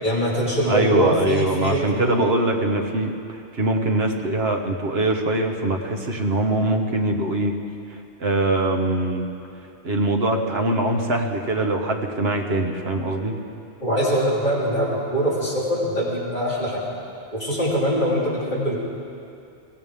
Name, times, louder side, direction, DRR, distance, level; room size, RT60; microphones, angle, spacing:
voice 1, 0.0-2.1 13.8-16.8 17.3-18.8, equal, 40° left, -8 dB, 3.8 m, -23 dB
voice 2, 0.7-7.5 7.9-9.3 9.8-13.3, right 2 dB, 55° right, 3 dB, 1.5 m, -23 dB
22.5 x 16.5 x 3.6 m, 2.6 s
omnidirectional pair, 1.2 m